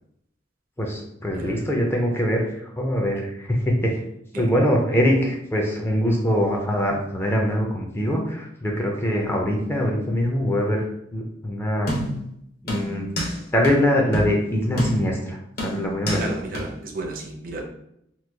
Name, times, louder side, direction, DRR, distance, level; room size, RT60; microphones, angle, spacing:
voice 1, 0.8-4.0 4.4-10.8 11.1-11.9 12.6-13.1 13.5-16.3, equal, 10° left, 0 dB, 0.4 m, -23 dB
voice 2, 1.3-1.6 4.3-4.5 16.1-17.6, right 2 dB, 45° right, 1 dB, 0.5 m, -32 dB
sound 1, 11.9-12.3 12.7-13.4 13.6-13.7 14.1-14.3 14.8-15.2 15.6-16.3 16.5-16.6, equal, 50° left, 0.8 m, -27 dB
3.0 x 2.2 x 3.3 m, 0.76 s
head